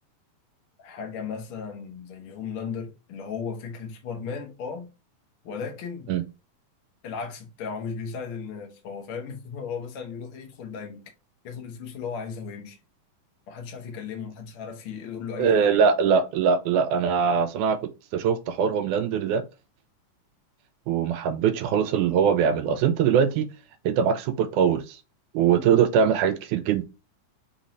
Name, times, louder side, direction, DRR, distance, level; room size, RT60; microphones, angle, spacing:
voice 1, 0.8-4.9 5.4-6.1 7.0-11.1 11.4-12.8 13.5-15.9, left 6 dB, 60° left, 1.4 m, -36 dB
voice 2, 15.4-19.4 20.9-23.5 23.9-25.0 25.3-26.8, right 7 dB, 80° right, 1.9 m, -22 dB
5.6 x 2.7 x 3.0 m
omnidirectional pair, 3.7 m